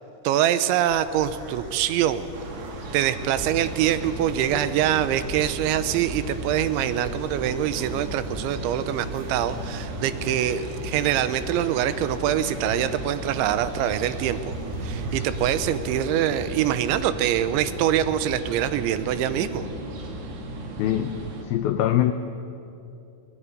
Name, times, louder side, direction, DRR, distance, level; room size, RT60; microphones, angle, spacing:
voice 1, 0.2-2.3 2.9-14.5 14.8-19.7, right 11 dB, 90° right, 12 dB, 3.2 m, -24 dB
sound 1, 0.9-16.1, right 1 dB, 35° right, 3.3 m, -40 dB
sound 2, 2.3-21.4, right 3 dB, 65° right, 4.5 m, -39 dB
sound 3, 3.3-21.3, left 1 dB, 15° left, 1.8 m, -38 dB
voice 2, 20.8-22.1, left 12 dB, 90° left, 9 dB, 2.1 m, -23 dB
21.0 x 20.5 x 10.0 m, 2.7 s
omnidirectional pair, 5.4 m